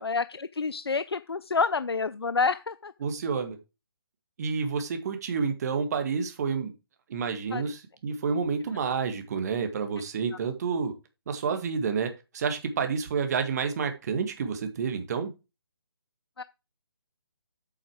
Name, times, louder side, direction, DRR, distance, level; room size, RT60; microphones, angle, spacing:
voice 1, 0.0-2.9 7.5-7.7 16.4-16.5, left 4 dB, 85° left, 0.5 m, -28 dB
voice 2, 3.0-3.6 4.4-6.7 7.1-10.9 11.3-15.3, right 5 dB, 40° right, 1.8 m, -29 dB
8.4 x 6.0 x 4.9 m
figure-of-eight pair, 145°, 13 cm